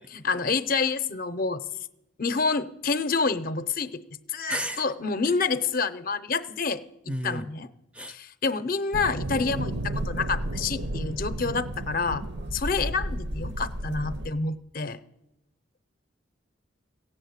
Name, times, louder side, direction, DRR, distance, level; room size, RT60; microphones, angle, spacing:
voice 1, 0.1-1.6 2.2-4.0 4.3-7.7 8.1-12.2 12.5-15.0, left 4 dB, 45° left, 12 dB, 0.6 m, -28 dB
voice 2, 4.5-4.8 7.1-7.5 7.9-8.1, equal, 5° right, 9 dB, 0.5 m, -31 dB
sound 1, 8.9-14.3, right 1 dB, 55° right, 0.7 m, -32 dB
15.5 x 8.7 x 8.0 m, 0.90 s
head